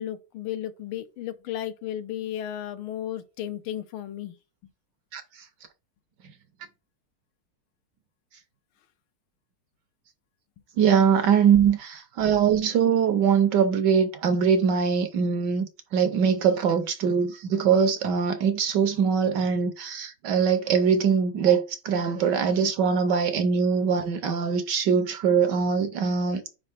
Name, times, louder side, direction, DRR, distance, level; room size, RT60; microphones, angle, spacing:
voice 1, 0.0-4.4, left 11 dB, 85° left, 1.5 m, -34 dB
voice 2, 10.8-15.7 15.9-26.4, right 6 dB, 65° right, 1.2 m, -22 dB
5.0 x 4.4 x 5.0 m
omnidirectional pair, 2.3 m